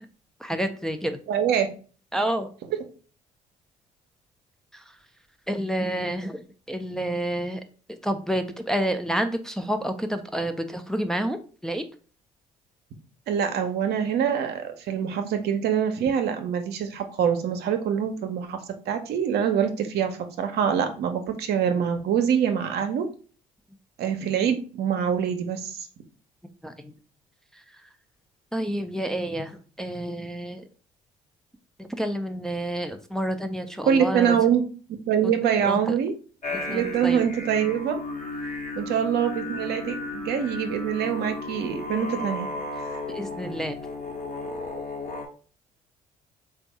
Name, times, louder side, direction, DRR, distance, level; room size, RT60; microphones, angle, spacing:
voice 1, 0.4-1.2 2.1-2.5 5.5-6.4 6.7-7.6 7.9-11.4 11.6-11.8 26.6-26.7 28.5-29.5 29.8-30.6 31.8-34.4 35.6-35.8 36.7-37.2 43.1-43.8, right 1 dB, 5° left, 6 dB, 0.5 m, -29 dB
voice 2, 1.3-1.7 13.3-18.6 18.9-23.1 24.0-25.8 33.9-34.6 35.1-36.1 36.7-38.0 38.8-42.5 42.9-43.0, right 8 dB, 65° right, 6 dB, 0.7 m, -24 dB
sound 1, 36.4-45.3, left 2 dB, 45° left, 1.1 m, -34 dB
3.4 x 2.3 x 4.1 m, 0.39 s
hypercardioid pair, 55°, 18 cm